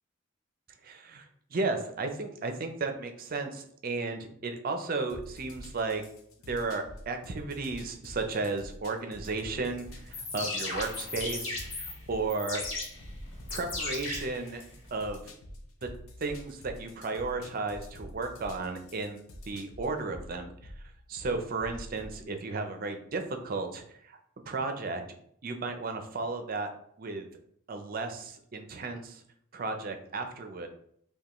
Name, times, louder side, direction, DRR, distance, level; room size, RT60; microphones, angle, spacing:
voice 1, 0.8-6.0 6.5-12.6 13.5-14.6 14.9-15.2 15.8-15.9 16.2-20.7 21.1-24.2 24.4-25.0 25.4-26.7 27.0-27.3 27.7-29.2 29.5-30.7, right 3 dB, 45° right, 6 dB, 0.5 m, -34 dB
sound 1, 5.1-22.2, left 1 dB, 80° left, 0.7 m, -47 dB
sound 2, 10.0-15.0, left 2 dB, 60° left, 1.1 m, -37 dB
5.3 x 2.2 x 3.0 m, 0.68 s
head